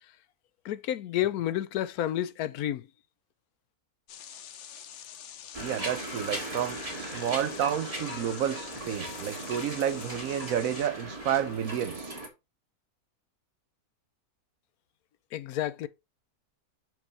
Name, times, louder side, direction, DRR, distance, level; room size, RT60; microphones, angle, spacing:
voice 1, 0.6-2.8 15.3-15.9, left 12 dB, 80° left, 1.1 m, -30 dB
sound 1, 4.1-10.9, left 9 dB, 60° left, 0.9 m, -46 dB
sound 2, 5.5-12.3, right 1 dB, 25° right, 1.9 m, -38 dB
voice 2, 5.6-12.1, right 9 dB, 70° right, 1.1 m, -30 dB
6.0 x 4.8 x 4.7 m
omnidirectional pair, 1.6 m